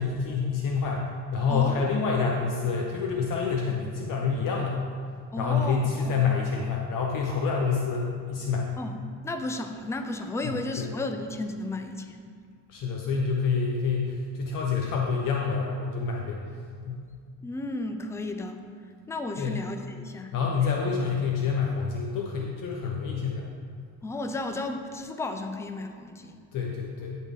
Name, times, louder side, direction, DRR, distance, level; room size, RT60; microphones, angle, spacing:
voice 1, 0.0-4.8 5.4-8.7 10.4-10.9 12.7-16.5 16.8-17.0 19.4-19.6 20.3-23.5 26.5-27.2, left 5 dB, 55° left, -1 dB, 0.9 m, -27 dB
voice 2, 1.5-1.9 5.3-6.2 8.8-8.9 9.2-12.2 17.4-18.6 19.1-20.3 24.0-26.4, left 2 dB, 5° left, 6 dB, 0.4 m, -33 dB
12.0 x 4.1 x 3.7 m, 2.1 s
cardioid pair, 110°, 39 cm